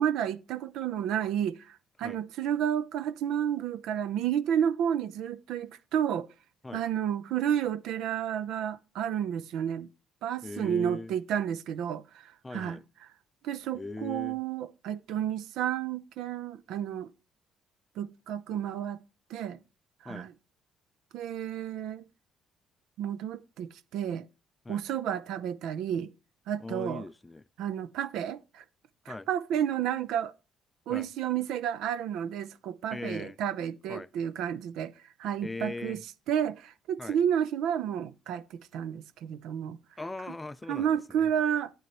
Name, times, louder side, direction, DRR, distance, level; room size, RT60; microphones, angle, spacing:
voice 1, 0.0-6.3 6.7-9.9 10.2-12.8 13.4-17.1 18.0-19.0 19.3-19.6 20.0-20.3 21.1-22.0 23.0-24.3 24.7-26.1 26.5-27.0 27.6-28.6 29.1-30.3 30.9-34.9 35.2-36.0 36.3-38.4 38.7-39.8 40.7-41.7, right 9 dB, 80° right, 0.6 m, -31 dB
voice 2, 10.4-11.1 12.4-12.8 13.7-14.4 20.0-20.3 24.6-24.8 26.6-27.4 29.1-29.3 30.9-31.1 32.9-33.4 33.9-34.1 35.4-36.0 37.0-37.2 40.0-41.3, left 2 dB, 15° left, 0.4 m, -39 dB
9.8 x 9.2 x 3.0 m
cardioid pair, 120°, 0 cm